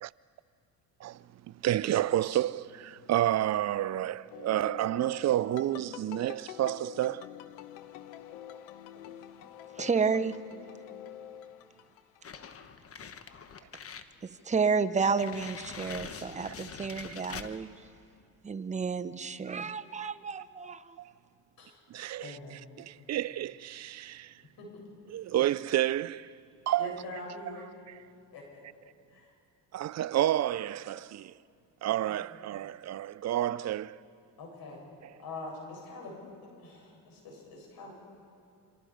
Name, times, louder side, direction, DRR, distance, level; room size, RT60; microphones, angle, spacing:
voice 1, 1.6-7.3 20.0-20.1 21.0-21.1 21.9-24.3 25.1-26.3 26.7-27.0 27.9-28.0 29.7-31.3 31.8-34.0 35.0-35.1, right 13 dB, 45° right, 0.6 m, -30 dB
sound 1, 4.3-12.6 12.9-13.4, left 10 dB, 85° left, 1.1 m, -47 dB
voice 2, 9.8-10.4 14.2-17.7 18.4-21.0, right 5 dB, 20° right, 0.9 m, -31 dB
sound 2, 12.2-14.1 14.5-14.6 15.0-17.6, left 6 dB, 35° left, 1.2 m, -44 dB
voice 3, 22.2-22.6 24.6-24.8 26.8-27.7 28.3-28.6 29.1-29.3 29.9-30.0 32.0-32.1 34.4-34.8 35.2-36.2 36.6-37.9, left 2 dB, 60° left, 8.0 m, -44 dB
28.5 x 25.5 x 5.1 m
supercardioid pair, 95°, 39 cm